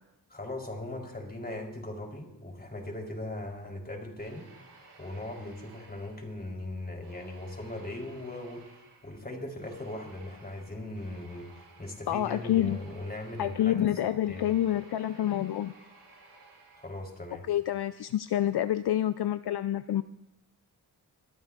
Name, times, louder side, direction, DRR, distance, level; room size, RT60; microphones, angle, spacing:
voice 1, 0.3-4.5 5.0-11.5 11.8-14.5 16.7-17.5, left 1 dB, 20° left, 3.8 m, -39 dB
sound 1, 4.2-6.6 7.0-17.3, right 3 dB, 80° right, 6.4 m, -56 dB
voice 2, 12.1-12.8 13.4-15.7 17.5-20.0, left 11 dB, 70° left, 0.5 m, -28 dB
25.5 x 12.5 x 2.5 m
cardioid pair, 70°, 41 cm